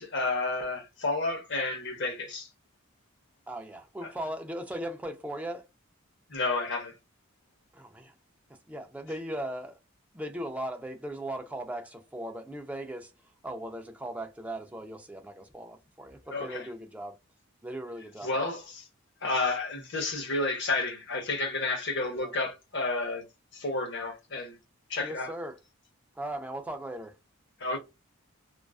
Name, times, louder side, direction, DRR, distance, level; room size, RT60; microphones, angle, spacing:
voice 1, 0.0-2.5 4.0-4.1 6.3-6.9 16.3-16.6 18.2-18.9 19.2-23.2 23.5-24.6 24.9-25.3 27.6-27.8, left 3 dB, 55° left, 0.7 m, -31 dB
voice 2, 3.5-5.6 7.7-8.1 8.7-9.8 10.1-13.1 13.4-17.1 17.6-18.5 22.1-22.3 25.0-25.6 26.2-27.1, right 1 dB, 5° right, 0.3 m, -38 dB
2.3 x 2.3 x 2.3 m
head